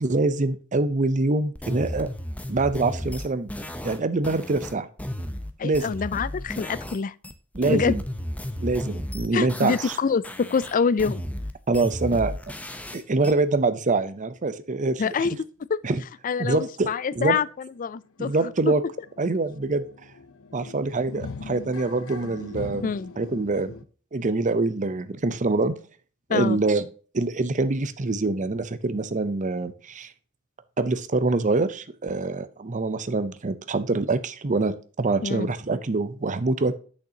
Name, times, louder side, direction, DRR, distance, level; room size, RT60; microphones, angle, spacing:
voice 1, 0.0-2.1 2.5-3.6 3.8-4.9 5.6-5.9 7.5-8.0 8.6-10.0 11.7-12.3 12.9-15.3 15.8-16.0 16.4-16.9 17.1-17.4 18.2-18.8 19.2-19.8 20.5-22.9 23.2-23.7 24.1-25.7 26.3-26.9 27.1-30.1 30.8-36.8, right 3 dB, 35° right, 0.7 m, -25 dB
sound 1, 1.5-7.0 7.2-10.0 10.2-13.3, left 1 dB, 5° left, 0.8 m, -34 dB
voice 2, 5.6-7.1 7.6-8.0 9.3-11.2 15.0-15.4 15.7-15.8 16.2-18.7 22.8-23.1 26.3-26.6 35.2-35.5, left 5 dB, 40° left, 0.4 m, -26 dB
sound 2, 17.4-17.5 17.8-23.8, left 4 dB, 85° left, 0.7 m, -41 dB
8.5 x 6.5 x 2.8 m
head